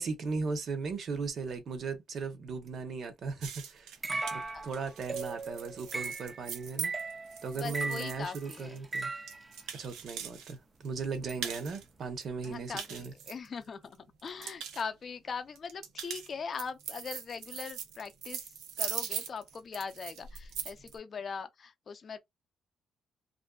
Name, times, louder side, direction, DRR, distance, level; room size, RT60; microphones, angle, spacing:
voice 1, 0.0-6.9 7.4-9.1 9.7-13.1, right 4 dB, 60° right, 0.8 m, -37 dB
sound 1, 3.4-10.5 10.8-11.8 12.2-13.9 14.2-14.8 15.6-20.9, right 8 dB, 85° right, 0.5 m, -41 dB
sound 2, 4.0-9.5, right 3 dB, 20° right, 0.4 m, -37 dB
voice 2, 7.5-8.8 11.4-11.6 12.4-22.2, left 5 dB, 45° left, 0.4 m, -41 dB
2.5 x 2.2 x 2.2 m
cardioid pair, 90°, 0 cm